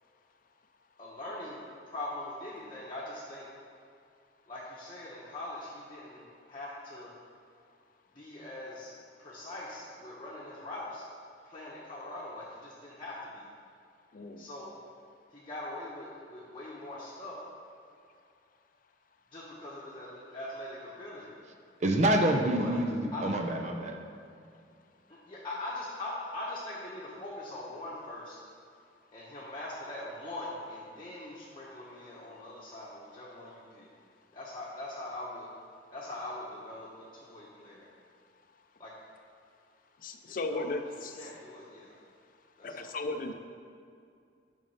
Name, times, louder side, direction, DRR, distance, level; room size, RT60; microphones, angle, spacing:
voice 1, 1.0-3.5 4.5-6.2 6.5-7.1 8.1-8.9 9.2-11.0 11.4-13.4 14.4-14.7 15.3-17.4 19.3-21.3 22.6-22.7 23.1-23.2 25.1-28.4 29.1-33.9 34.3-35.5 35.9-37.9 38.8-38.9 40.3-40.7 41.2-41.9 42.6-42.9, left 1 dB, 30° left, -7 dB, 1.0 m, -42 dB
voice 2, 21.8-23.9, right 1 dB, 40° right, 4 dB, 0.7 m, -27 dB
voice 3, 40.0-41.6 42.6-43.3, left 2 dB, 50° left, 7 dB, 0.5 m, -36 dB
6.4 x 5.3 x 5.5 m, 2.3 s
head